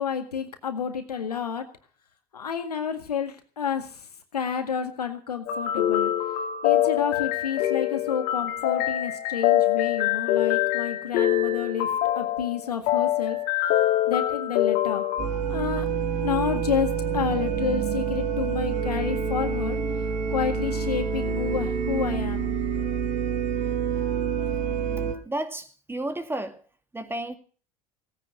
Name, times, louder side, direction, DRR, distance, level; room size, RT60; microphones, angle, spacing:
voice 1, 0.0-1.7 2.3-6.1 6.6-13.4 14.1-15.0 15.5-15.9 16.2-19.8 20.3-22.5, left 7 dB, 90° left, 1.9 m, -30 dB
sound 1, 5.5-15.3, left 13 dB, 55° left, 2.3 m, -24 dB
sound 2, 15.2-25.1, right 6 dB, 50° right, 6.0 m, -27 dB
voice 2, 25.3-26.6 26.9-27.4, right 1 dB, 10° right, 2.1 m, -32 dB
17.0 x 10.0 x 6.6 m
hypercardioid pair, 80°, 20 cm